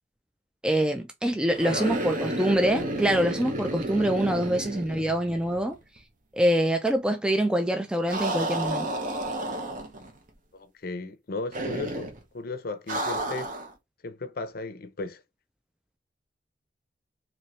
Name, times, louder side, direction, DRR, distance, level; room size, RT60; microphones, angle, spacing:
voice 1, 0.6-5.8 6.3-8.9, right 1 dB, 5° right, 0.3 m, -25 dB
sound 1, 1.5-5.7 6.0-6.1 8.1-10.1 11.5-12.2 12.9-13.7, right 1 dB, 45° right, 0.8 m, -31 dB
voice 2, 10.5-12.1 12.3-13.5 14.0-15.2, left 3 dB, 55° left, 0.6 m, -35 dB
4.2 x 2.9 x 3.0 m
head